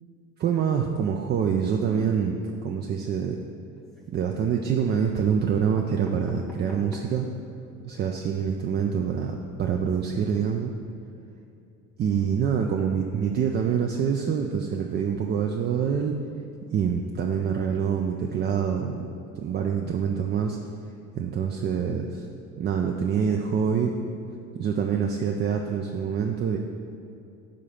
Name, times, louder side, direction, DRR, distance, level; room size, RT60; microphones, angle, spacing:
voice 1, 0.4-3.4 4.1-7.3 7.8-10.7 12.0-16.2 16.7-20.6 21.1-22.3 22.6-24.0 24.5-26.6, right 7 dB, 25° right, 2 dB, 0.3 m, -26 dB
sound 1, 3.8-4.4 5.1-5.2 5.5-7.3 7.8-7.9 8.1-8.2 8.5-8.7, equal, ahead, 0.7 m, -44 dB
5.0 x 3.7 x 5.6 m, 2.6 s
hypercardioid pair, 65°, 40 cm